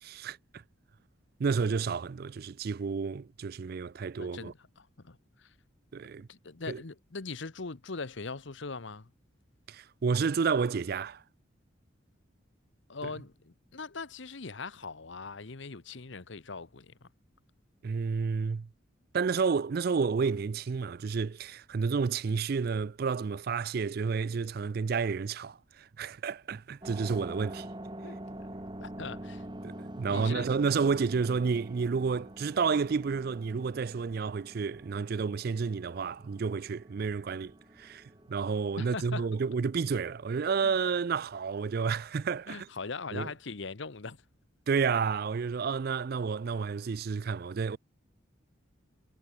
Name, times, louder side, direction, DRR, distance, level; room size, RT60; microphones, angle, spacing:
voice 1, 0.0-0.6 1.4-4.5 5.9-6.3 6.7-6.8 9.7-11.2 13.0-13.1 17.8-18.7 19.1-27.7 29.6-42.7 43.1-43.3 44.7-47.8, right 5 dB, 50° right, 0.4 m, -30 dB
voice 2, 4.2-5.5 6.3-9.1 12.9-17.1 28.0-28.5 28.8-29.4 30.1-30.5 38.8-39.3 40.6-40.8 42.5-44.2, left 4 dB, 65° left, 1.0 m, -41 dB
sound 1, 26.8-41.8, right 1 dB, 20° right, 1.7 m, -46 dB
head